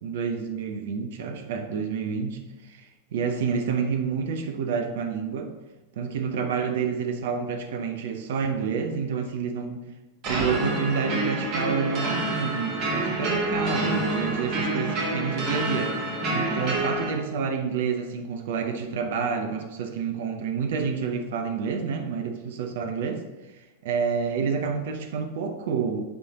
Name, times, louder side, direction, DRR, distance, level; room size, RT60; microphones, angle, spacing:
voice 1, 0.0-2.8 3.1-5.5 6.0-9.8 10.3-16.0 16.3-23.2 23.8-26.0, right 6 dB, 55° right, 6 dB, 0.7 m, -28 dB
sound 1, 10.2-17.1, right 2 dB, 40° right, 1.5 m, -28 dB
9.0 x 3.3 x 4.0 m, 1.1 s
figure-of-eight pair, 90°, 0 cm